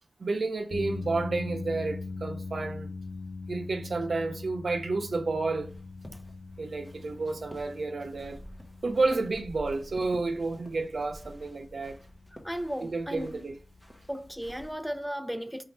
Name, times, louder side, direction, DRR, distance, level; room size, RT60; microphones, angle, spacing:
voice 1, 0.2-2.9 3.5-5.7 6.6-8.4 8.8-12.0 12.8-13.5, right 3 dB, 90° right, 0.6 m, -30 dB
sound 1, 0.7-15.0, left 3 dB, 45° left, 0.7 m, -42 dB
sound 2, 5.7-14.7, equal, 15° left, 1.3 m, -50 dB
voice 2, 12.4-13.5 14.1-15.6, equal, ahead, 0.6 m, -35 dB
5.0 x 2.8 x 3.3 m
wide cardioid pair, 50°, 0 cm